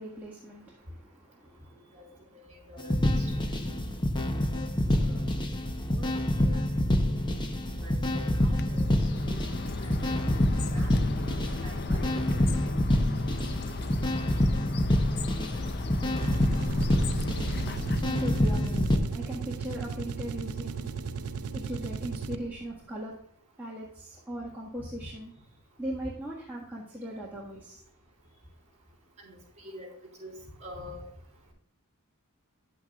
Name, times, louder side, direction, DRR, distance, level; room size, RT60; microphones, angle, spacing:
voice 1, 0.0-1.9 17.1-17.3 18.1-21.0 21.5-23.1 23.6-25.3 25.8-27.8, right 1 dB, 10° right, -8 dB, 1.6 m, -39 dB
voice 2, 2.3-3.8 4.5-5.1 5.9-6.1 6.4-6.8 7.7-8.9 9.3-10.1 10.7-12.7 25.0-25.1 29.2-29.9 30.2-30.3 30.6-31.1, left 1 dB, 30° right, -1 dB, 3.9 m, -46 dB
sound 1, 2.8-19.0, left 1 dB, 20° left, 0.8 m, -27 dB
Bird, 8.5-18.3, left 3 dB, 50° left, 0.5 m, -36 dB
sound 2, 16.1-22.7, right 5 dB, 75° right, 0.5 m, -36 dB
10.0 x 8.6 x 2.4 m, 0.67 s
head